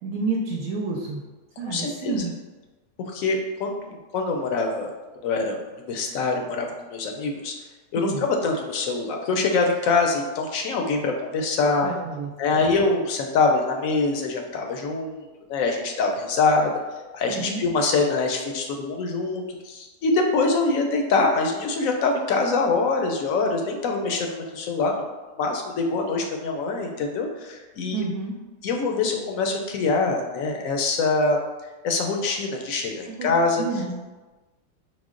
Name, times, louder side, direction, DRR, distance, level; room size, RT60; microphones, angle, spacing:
voice 1, 0.0-1.2 1.6-2.3 8.0-8.3 11.8-12.6 17.3-17.6 27.9-28.4 33.1-33.3 33.6-34.0, right 3 dB, 75° right, -1 dB, 1.0 m, -29 dB
voice 2, 1.6-2.2 3.1-4.9 5.2-7.5 7.9-11.9 12.4-15.2 15.5-16.7 17.1-25.0 25.4-28.0 28.6-31.4 31.8-33.6, left 3 dB, 70° left, 2 dB, 0.9 m, -24 dB
4.9 x 2.1 x 3.6 m, 1.2 s
omnidirectional pair, 1.7 m